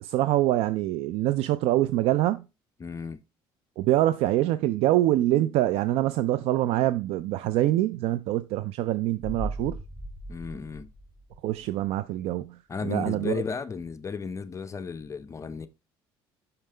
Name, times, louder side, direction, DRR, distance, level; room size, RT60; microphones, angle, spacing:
voice 1, 0.0-2.4 3.8-9.8 11.4-12.6 12.8-13.4, right 14 dB, 75° right, 0.4 m, -25 dB
voice 2, 2.8-3.2 10.3-10.9 12.7-15.7, left 5 dB, 30° left, 0.5 m, -34 dB
sound 1, 9.2-11.9 12.2-12.3, right 1 dB, 5° left, 2.4 m, -38 dB
5.6 x 5.4 x 3.3 m
supercardioid pair, 95°, 10 cm